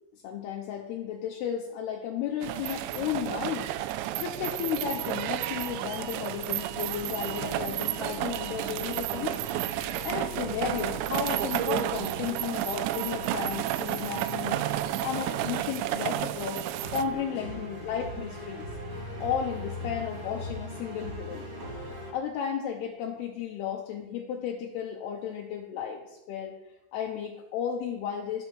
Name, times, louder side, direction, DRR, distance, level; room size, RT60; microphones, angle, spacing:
voice 1, 0.1-9.4 10.0-14.7 15.0-16.6 16.9-18.7 19.2-21.5 22.1-26.6 26.9-28.5, left 8 dB, 75° left, 1 dB, 2.6 m, -34 dB
sound 1, 2.4-17.0, right 14 dB, 85° right, 2.8 m, -32 dB
sound 2, 6.9-22.1, equal, 35° right, 2.7 m, -41 dB
10.5 x 6.5 x 6.2 m, 0.95 s
omnidirectional pair, 5.1 m